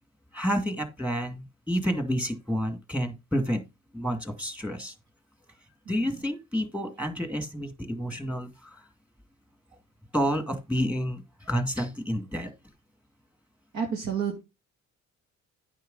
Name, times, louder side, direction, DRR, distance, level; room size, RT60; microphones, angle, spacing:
voice 1, 0.3-3.6 3.9-4.9 5.9-8.8 10.1-12.5, equal, 5° right, 6 dB, 2.3 m, -29 dB
voice 2, 5.8-6.2 13.7-14.4, right 7 dB, 65° right, 1 dB, 2.9 m, -31 dB
9.1 x 5.8 x 4.1 m, 0.25 s
cardioid pair, 90°, 30 cm